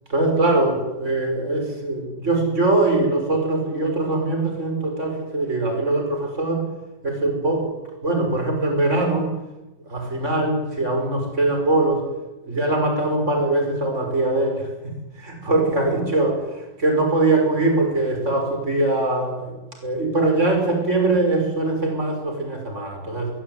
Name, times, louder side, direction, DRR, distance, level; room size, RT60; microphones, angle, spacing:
voice 1, 0.1-6.7 7.0-7.7 8.0-9.3 9.9-12.1 12.4-19.5 19.8-23.3, right 2 dB, 35° right, 3 dB, 6.8 m, -22 dB
23.0 x 22.0 x 9.7 m, 1.0 s
omnidirectional pair, 2.0 m